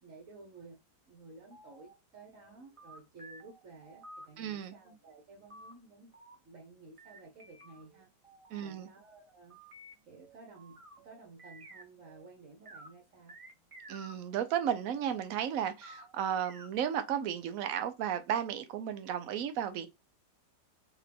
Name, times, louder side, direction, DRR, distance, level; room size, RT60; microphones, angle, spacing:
voice 1, 0.0-6.1 6.4-8.1 8.6-9.6 10.1-13.4, right 3 dB, 50° right, 1.2 m, -54 dB
sound 1, 1.3-1.9 2.3-4.3 5.5-5.7 6.1-6.7 7.0-12.2 12.5-12.9 13.3-15.2 15.8-17.1, right 1 dB, 35° right, 0.5 m, -54 dB
voice 2, 4.4-4.7 8.5-8.9 13.9-19.9, right 9 dB, 65° right, 0.9 m, -34 dB
3.6 x 3.5 x 3.4 m
omnidirectional pair, 2.0 m